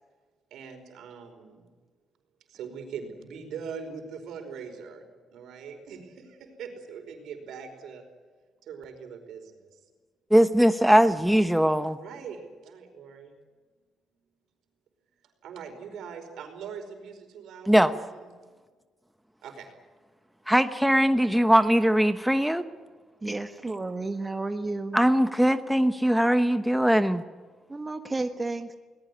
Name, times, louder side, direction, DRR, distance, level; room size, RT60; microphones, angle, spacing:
voice 1, 0.5-1.7 2.5-8.0 8.6-9.8 12.0-13.3 15.4-18.3 19.4-19.7, right 6 dB, 80° right, 6 dB, 5.0 m, -42 dB
voice 2, 10.3-12.0 17.7-17.9 20.5-22.6 23.3-23.4 24.9-27.2, equal, 5° right, 9 dB, 1.0 m, -21 dB
voice 3, 23.2-25.0 27.7-28.7, right 2 dB, 20° right, 7 dB, 1.4 m, -32 dB
21.0 x 19.5 x 10.0 m, 1.4 s
cardioid pair, 90°, 0 cm